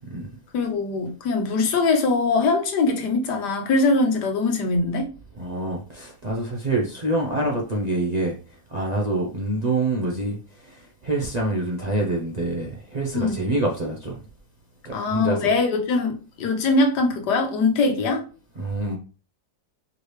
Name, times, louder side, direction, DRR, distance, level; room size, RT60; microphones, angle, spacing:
voice 1, 0.5-5.1 13.1-13.4 14.9-18.2, left 3 dB, 90° left, 1.5 m, -22 dB
voice 2, 5.4-14.2 14.8-15.5 18.6-19.0, right 2 dB, 45° right, 0.5 m, -26 dB
4.7 x 3.2 x 3.1 m
omnidirectional pair, 1.7 m